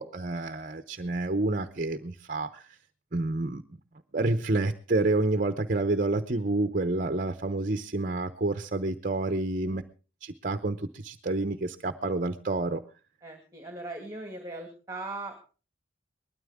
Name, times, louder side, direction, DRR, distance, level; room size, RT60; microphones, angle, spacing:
voice 1, 0.0-2.8 3.1-3.8 4.1-9.8 10.2-12.8, right 2 dB, 45° right, 10 dB, 0.8 m, -29 dB
voice 2, 13.2-15.3, right 2 dB, 15° right, 5 dB, 2.0 m, -39 dB
20.0 x 13.0 x 3.6 m, 0.36 s
head